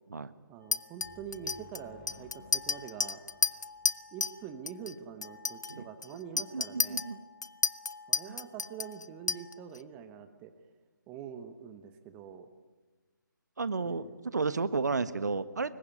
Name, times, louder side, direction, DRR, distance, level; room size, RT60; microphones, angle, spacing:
voice 1, 0.5-3.2 4.1-7.0 8.1-10.5 11.1-12.5 13.8-14.2, right 7 dB, 10° right, 9 dB, 1.1 m, -45 dB
Chink clink, 0.7-4.4 4.7-4.9 5.2-9.8, left 4 dB, 55° left, 0.9 m, -33 dB
sound 1, 1.0-4.7, left 4 dB, 20° left, 3.6 m, -59 dB
voice 2, 6.5-7.2 8.3-8.4 13.6-15.8, right 4 dB, 55° right, 14 dB, 1.4 m, -32 dB
25.0 x 22.5 x 9.7 m, 1.3 s
figure-of-eight pair, 150°, 11 cm